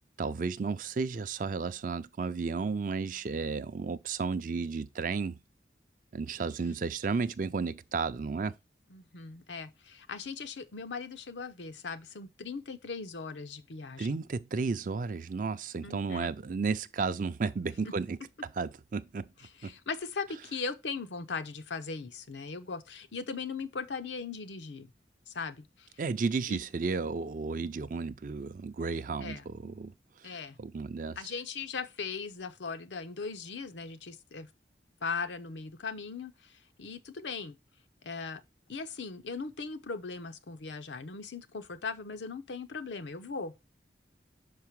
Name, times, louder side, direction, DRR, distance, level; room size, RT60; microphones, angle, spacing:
voice 1, 0.2-5.4 6.1-8.5 14.0-18.2 18.6-19.2 19.6-19.7 26.0-29.9 30.6-31.2, right 4 dB, 45° right, 0.4 m, -33 dB
voice 2, 8.9-14.1 15.8-16.3 17.8-17.9 19.6-24.9 25.3-25.9 26.5-26.6 29.2-29.5 30.2-30.6 31.2-34.5 35.0-37.6 38.0-38.4 38.7-43.5, left 4 dB, 90° left, 0.7 m, -39 dB
5.7 x 4.7 x 4.6 m
head